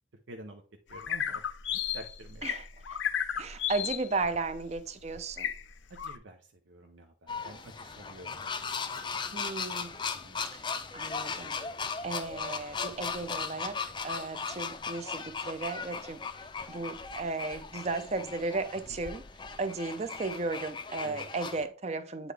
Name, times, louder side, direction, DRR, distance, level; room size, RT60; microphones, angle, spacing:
voice 1, 0.3-0.6 0.9-1.4 1.7-2.5 5.9-8.6 8.9-9.0 10.2-10.4 21.0-21.3, right 1 dB, 90° right, 5 dB, 0.7 m, -49 dB
sound 1, 0.9-6.2, left 9 dB, 80° left, 0.5 m, -34 dB
voice 2, 3.4-5.5 9.3-10.0 10.5-16.2 16.7-19.2 19.6-22.3, right 3 dB, 35° right, 10 dB, 0.5 m, -35 dB
sound 2, 7.3-21.6, left 5 dB, 25° left, 0.5 m, -38 dB
8.3 x 4.0 x 3.3 m, 0.39 s
head